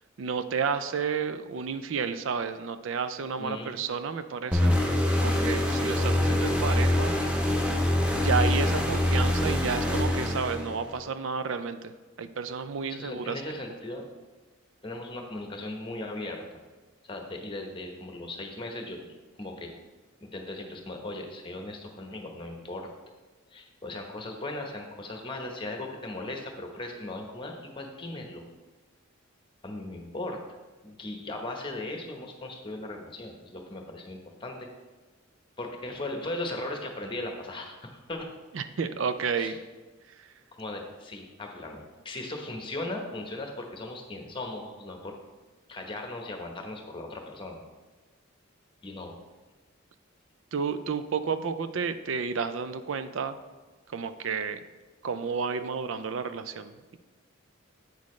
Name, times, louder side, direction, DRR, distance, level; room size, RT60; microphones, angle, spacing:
voice 1, 0.2-4.8 5.2-7.2 8.1-13.4 38.5-39.6 40.2-40.3 50.5-53.4 53.9-54.6 55.0-56.7, right 5 dB, 65° right, 11 dB, 0.4 m, -31 dB
voice 2, 3.4-3.8 12.9-14.1 14.8-16.4 17.0-19.7 20.2-22.9 23.5-28.4 29.6-30.4 30.8-34.7 35.6-38.3 39.4-39.6 40.6-45.1 45.7-47.6 48.8-49.2, left 2 dB, 25° left, 3 dB, 0.9 m, -38 dB
sound 1, 4.5-11.0, left 1 dB, 5° right, 0.6 m, -25 dB
8.3 x 6.3 x 3.2 m, 1.3 s
head